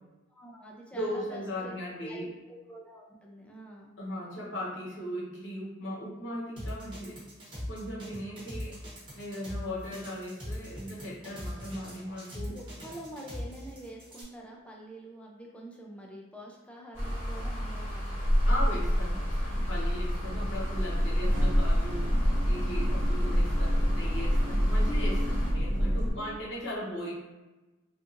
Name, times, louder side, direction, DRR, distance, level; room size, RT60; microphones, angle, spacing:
voice 1, 0.3-1.7 2.0-3.9 12.4-18.2 26.1-26.4, right 1 dB, 5° left, -2 dB, 0.3 m, -46 dB
voice 2, 0.9-2.3 4.0-7.2 7.7-8.8 9.1-12.6 18.4-27.1, equal, 65° left, -6 dB, 0.9 m, -38 dB
sound 1, 6.6-14.2, equal, 25° right, 0.9 m, -40 dB
sound 2, 16.9-25.5, equal, 30° left, 1.0 m, -36 dB
sound 3, 17.0-26.1, equal, 70° right, 0.6 m, -27 dB
2.7 x 2.4 x 2.4 m, 1.1 s
head